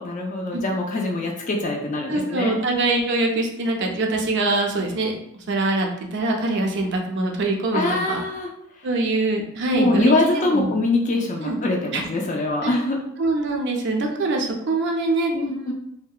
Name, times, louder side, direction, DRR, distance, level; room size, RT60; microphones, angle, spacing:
voice 1, 0.0-2.5 7.7-8.5 9.7-13.0 15.3-15.7, left 2 dB, 35° left, 0 dB, 0.3 m, -23 dB
voice 2, 2.1-5.1 5.5-8.2 8.8-10.8 11.4-11.6 11.9-12.1 12.6-12.7 13.2-15.7, right 2 dB, 55° right, 2 dB, 0.4 m, -24 dB
2.7 x 2.1 x 2.3 m, 0.77 s
head